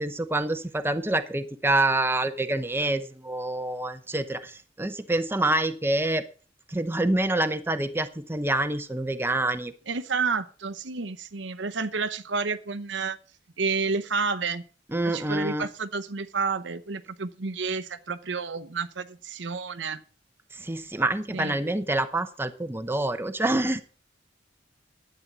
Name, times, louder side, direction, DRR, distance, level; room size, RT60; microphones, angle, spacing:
voice 1, 0.0-6.2 6.7-9.7 14.9-15.7 20.5-23.8, right 2 dB, 10° right, 9 dB, 0.8 m, -27 dB
voice 2, 9.9-13.2 13.6-14.6 15.0-20.0 21.3-21.6, right 4 dB, 70° right, 10 dB, 0.8 m, -30 dB
11.0 x 8.7 x 6.0 m, 0.39 s
head